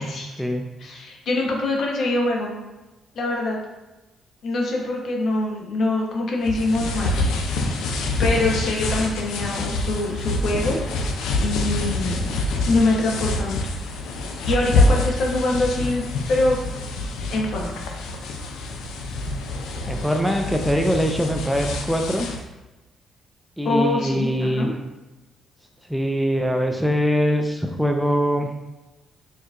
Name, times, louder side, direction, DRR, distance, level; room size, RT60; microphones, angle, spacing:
voice 1, 0.8-2.5 3.1-3.6 4.4-7.3 8.2-11.1 11.4-12.4 12.7-13.6 14.4-16.6 17.3-17.7 23.6-24.7, left 2 dB, 65° left, -1 dB, 0.7 m, -24 dB
sound 1, 6.4-22.4, left 2 dB, 90° left, 0.3 m, -26 dB
voice 2, 19.9-22.3 23.6-24.7 25.9-28.5, equal, ahead, 3 dB, 0.3 m, -22 dB
4.5 x 2.4 x 2.4 m, 1.1 s
cardioid pair, 90°, 0 cm